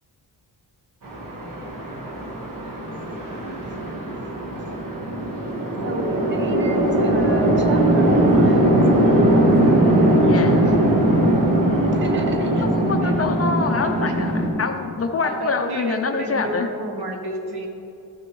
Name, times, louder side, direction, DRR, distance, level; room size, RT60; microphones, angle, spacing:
Chatter / Traffic noise roadway noise / Train, 1.0-14.5, right 1 dB, 55° right, 1.4 m, -20 dB
voice 1, 2.7-3.2 4.1-4.3 5.8-9.1 10.2-10.5 11.8-12.9, right 3 dB, 30° right, 4 dB, 0.7 m, -33 dB
voice 2, 10.3-10.6 12.6-16.7, left 4 dB, 40° left, 6 dB, 0.5 m, -25 dB
voice 3, 15.2-17.7, right 1 dB, 70° right, 2 dB, 1.2 m, -30 dB
13.5 x 6.2 x 3.1 m, 2.8 s
wide cardioid pair, 165°, 39 cm